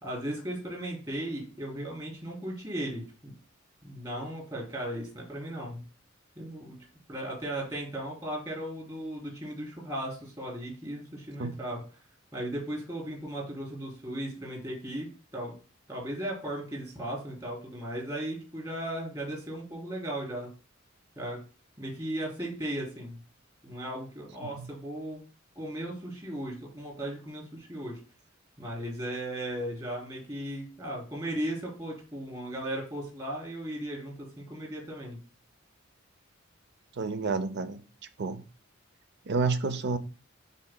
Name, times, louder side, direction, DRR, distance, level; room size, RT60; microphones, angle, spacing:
voice 1, 0.0-3.3 3.8-5.8 6.4-6.8 7.1-11.8 12.3-15.5 15.9-20.5 21.2-21.4 21.8-23.2 23.6-25.2 25.6-28.0 28.6-35.2, right 1 dB, 20° right, 3.3 m, -36 dB
voice 2, 37.0-37.8 38.2-38.4 39.3-40.0, right 4 dB, 60° right, 0.6 m, -29 dB
10.5 x 4.2 x 2.2 m
head